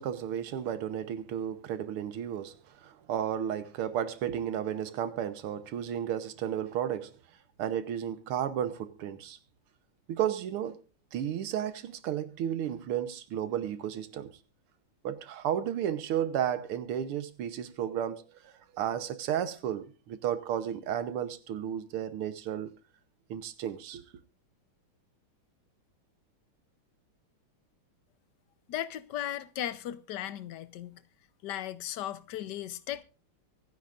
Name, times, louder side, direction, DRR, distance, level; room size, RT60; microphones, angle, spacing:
voice 1, 0.0-7.1 7.6-9.4 10.1-10.8 11.1-14.3 15.0-22.7 23.3-24.0, right 10 dB, 85° right, 1.9 m, -33 dB
voice 2, 28.7-31.0 31.4-33.0, left 12 dB, 65° left, 1.2 m, -36 dB
24.5 x 9.8 x 2.5 m
omnidirectional pair, 2.4 m